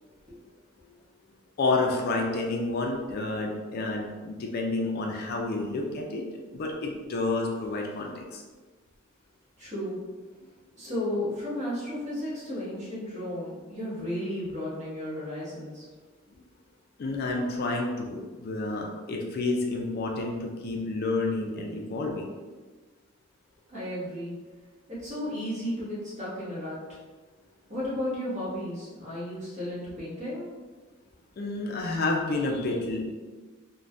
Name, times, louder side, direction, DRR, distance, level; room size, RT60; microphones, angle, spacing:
voice 1, 1.6-6.2 6.5-8.4 17.0-22.3 31.4-33.1, left 2 dB, 50° left, 0 dB, 0.4 m, -29 dB
voice 2, 9.6-10.0 10.7-15.8 23.7-24.3 24.9-26.8 27.7-30.5, left 1 dB, 35° right, -9 dB, 1.2 m, -33 dB
3.3 x 2.1 x 2.5 m, 1.3 s
head